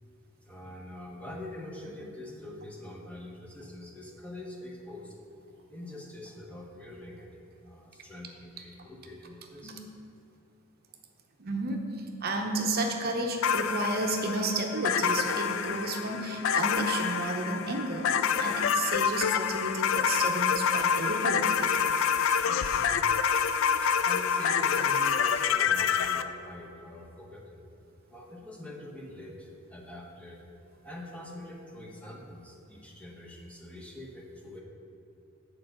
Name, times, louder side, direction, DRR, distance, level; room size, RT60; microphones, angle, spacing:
voice 1, 0.4-5.2 5.7-7.3 7.6-9.8 22.7-23.1 23.5-27.6 28.1-30.4 30.8-34.6, left 1 dB, 5° left, -1 dB, 0.9 m, -44 dB
voice 2, 11.4-21.7, right 2 dB, 50° right, 3 dB, 0.7 m, -32 dB
sound 1, 13.4-26.2, left 7 dB, 70° left, 0.4 m, -27 dB
8.4 x 4.6 x 6.4 m, 2.7 s
head